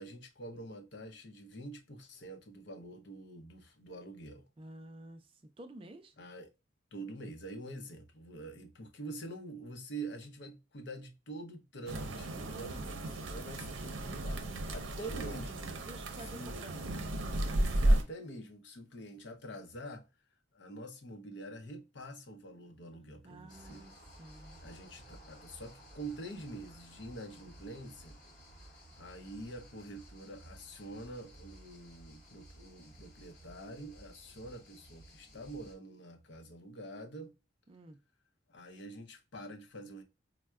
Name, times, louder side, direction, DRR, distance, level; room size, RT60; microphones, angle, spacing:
voice 1, 0.0-4.4 6.2-6.5 6.9-15.8 16.2-16.7 17.7-20.1 20.5-23.9 24.6-28.2 29.0-37.4 38.5-40.0, right 1 dB, 65° left, 0.6 m, -46 dB
voice 2, 4.6-5.3 5.6-6.1 12.4-13.0 15.9-17.1 23.2-23.9 24.2-24.6 37.7-38.0, right 1 dB, 30° right, 0.3 m, -50 dB
sound 1, 11.9-18.0, right 1 dB, 80° right, 0.6 m, -33 dB
sound 2, 23.5-35.8, right 1 dB, 40° left, 1.0 m, -56 dB
4.3 x 2.1 x 2.3 m
head